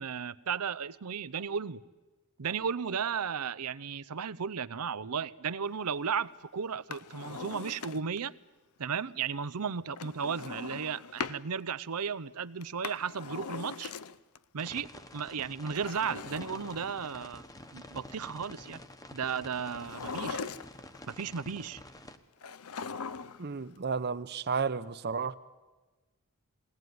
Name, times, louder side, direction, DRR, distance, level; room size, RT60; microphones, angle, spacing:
voice 1, 0.0-1.8 2.4-8.3 8.8-13.9 14.5-17.4 17.7-18.8 19.1-20.4 21.1-21.8, right 6 dB, 90° right, 0.7 m, -35 dB
Drawer open or close, 6.7-8.3 10.0-11.4 12.6-14.4 15.6-17.3 19.7-21.0 22.4-23.5 23.8-23.9, left 5 dB, 70° left, 0.7 m, -40 dB
sound 1, 14.6-22.2, left 1 dB, 15° left, 1.1 m, -49 dB
voice 2, 23.4-25.3, right 5 dB, 45° right, 0.8 m, -32 dB
21.0 x 18.0 x 9.4 m
head